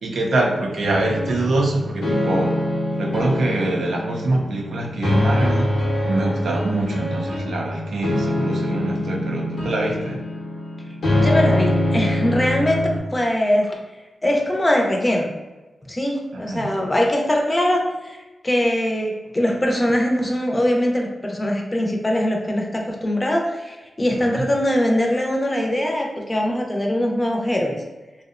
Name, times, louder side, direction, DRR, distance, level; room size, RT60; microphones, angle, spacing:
voice 1, 0.0-2.6 3.0-5.7 6.1-10.2 16.3-16.7 24.1-24.4, right 2 dB, 85° right, 0 dB, 0.4 m, -24 dB
sound 1, 0.8-13.0, left 1 dB, 80° left, 0.7 m, -24 dB
voice 2, 11.2-12.8 13.1-13.8 14.2-15.3 15.9-18.2 18.4-27.7, left 1 dB, 25° left, 1 dB, 0.5 m, -21 dB
2.5 x 2.0 x 2.4 m, 1.2 s
cardioid pair, 70°, 0 cm